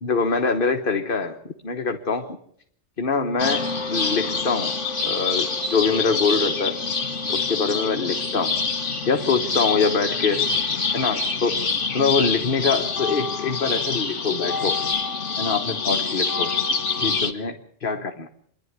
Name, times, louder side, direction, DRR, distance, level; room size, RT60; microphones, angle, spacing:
voice 1, 0.0-2.4 3.0-4.8 5.0-6.8 7.3-8.6 9.0-10.4 10.9-11.6 11.9-14.8 15.4-16.5 17.0-18.3, left 4 dB, 50° left, 5 dB, 1.4 m, -24 dB
sound 1, 3.4-17.3, left 4 dB, 75° left, 2.0 m, -26 dB
27.0 x 11.0 x 9.5 m, 0.68 s
omnidirectional pair, 1.2 m